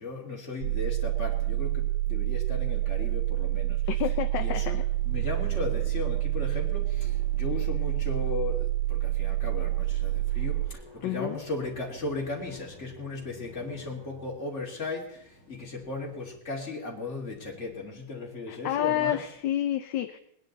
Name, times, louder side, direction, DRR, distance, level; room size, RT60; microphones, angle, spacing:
voice 1, 0.0-3.8 4.3-4.8 5.0-19.2, left 3 dB, 35° left, -1 dB, 3.0 m, -36 dB
sound 1, 0.6-10.7, right 16 dB, 85° right, 1.7 m, -28 dB
voice 2, 3.9-4.8 11.0-11.4 18.5-20.2, left 11 dB, 70° left, 9 dB, 1.3 m, -29 dB
sound 2, 4.5-16.5, right 2 dB, 45° right, 7.0 m, -51 dB
20.5 x 10.0 x 4.0 m, 0.73 s
omnidirectional pair, 2.3 m